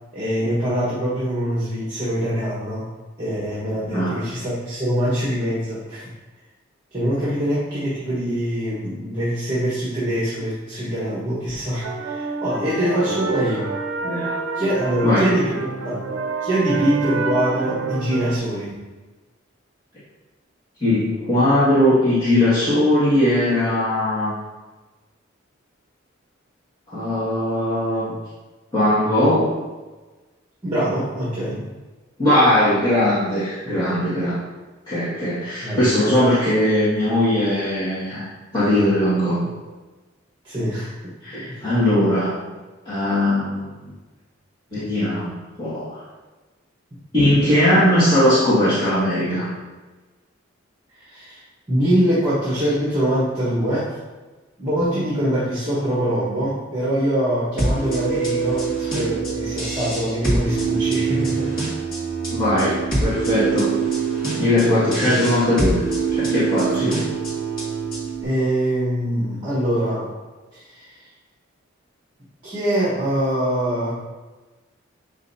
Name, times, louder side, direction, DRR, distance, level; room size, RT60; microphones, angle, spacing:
voice 1, 0.1-2.9 3.2-6.1 6.9-13.7 14.5-15.6 15.8-16.0 16.4-18.7 30.6-31.6 35.6-35.8 40.4-40.9 41.5-41.8 51.0-51.4 51.7-54.0 54.6-61.5 64.6-65.5 66.7-67.0 68.2-70.1 70.5-71.0 72.4-73.9, right 1 dB, 20° right, -8 dB, 1.4 m, -24 dB
sound 1, 11.8-18.4, right 3 dB, 70° right, 0.5 m, -27 dB
voice 2, 14.0-14.4 15.0-15.3 20.8-24.3 26.9-28.1 28.7-29.6 32.2-34.5 34.9-38.2 38.5-39.5 41.2-42.4 42.9-43.7 44.7-46.0 47.1-49.5 62.3-63.7 64.4-65.8 66.1-67.0, left 1 dB, 20° left, -14 dB, 1.9 m, -19 dB
sound 2, 57.6-68.2, right 4 dB, 45° left, 2.1 m, -24 dB
7.2 x 5.3 x 2.8 m, 1.2 s
head